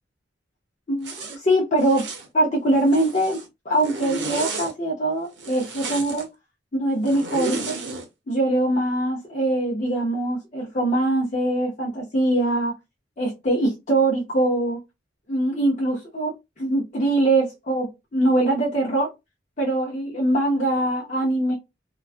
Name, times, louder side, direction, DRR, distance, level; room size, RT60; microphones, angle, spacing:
voice 1, 0.9-2.0 2.3-6.3 6.7-7.7 8.3-12.7 13.2-14.8 15.3-19.1 19.6-21.6, right 1 dB, 40° left, 0.6 m, -23 dB
Zipper (clothing), 1.0-1.4 1.8-2.3 2.7-3.5 3.8-4.7 5.4-6.2 7.1-8.0, right 3 dB, 70° right, 0.7 m, -32 dB
2.3 x 2.2 x 2.4 m
head